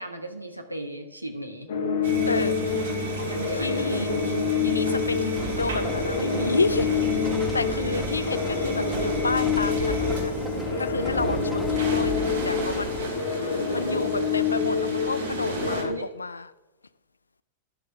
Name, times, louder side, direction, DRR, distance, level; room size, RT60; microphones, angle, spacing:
voice 1, 0.0-1.7 2.3-2.5 3.3-3.9 5.6-6.0 15.9-16.1, right 1 dB, 85° right, 5 dB, 1.2 m, -36 dB
sound 1, 1.7-15.9, left 5 dB, 60° left, 1.3 m, -27 dB
sound 2, 2.0-15.8, right 3 dB, 65° right, 2.5 m, -34 dB
voice 2, 3.2-10.3 10.8-13.0 13.7-16.5, left 3 dB, 80° left, 16 dB, 0.4 m, -31 dB
sound 3, 5.3-13.0, right 1 dB, ahead, 1.5 m, -35 dB
11.0 x 6.4 x 5.1 m, 1.0 s
figure-of-eight pair, 90°, 0 cm